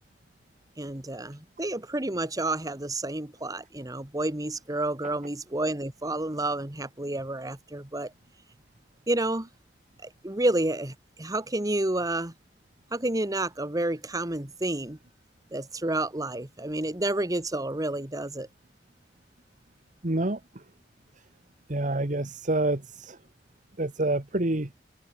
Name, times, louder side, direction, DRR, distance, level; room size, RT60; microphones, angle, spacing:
voice 1, 0.8-8.1 9.1-9.5 10.0-12.3 12.9-15.0 15.5-18.5, right 2 dB, 20° right, 1.6 m, -30 dB
voice 2, 20.0-20.4 21.7-23.2 23.8-24.7, right 2 dB, 45° right, 1.7 m, -27 dB
head